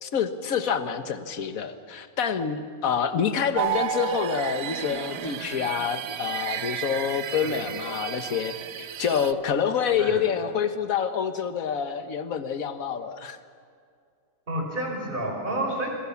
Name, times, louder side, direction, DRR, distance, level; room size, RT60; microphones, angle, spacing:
voice 1, 0.0-13.4, left 7 dB, 50° left, 9 dB, 1.6 m, -27 dB
sound 1, 3.5-9.3, right 10 dB, 65° right, 1.3 m, -32 dB
voice 2, 14.5-15.9, right 1 dB, 25° right, 1 dB, 5.3 m, -30 dB
29.0 x 22.0 x 7.2 m, 2.3 s
omnidirectional pair, 2.1 m